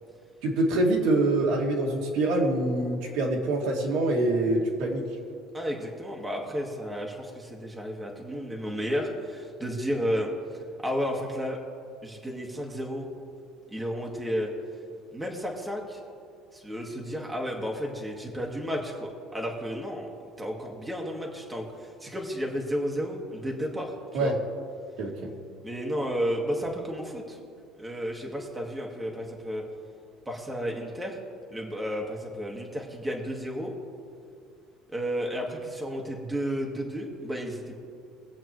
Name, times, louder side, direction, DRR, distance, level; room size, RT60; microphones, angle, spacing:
voice 1, 0.4-5.0 24.1-24.3 25.0-25.3, right 2 dB, 70° right, -1 dB, 2.2 m, -25 dB
voice 2, 5.5-10.3 10.8-11.6 12.0-13.1 13.7-14.5 15.1-16.0 16.5-20.1 20.4-24.3 25.6-27.4 27.8-29.6 30.2-31.2 31.5-33.7 34.9-37.8, equal, 5° right, -1 dB, 1.5 m, -32 dB
23.0 x 8.0 x 3.1 m, 2.3 s
cardioid pair, 155°, 0 cm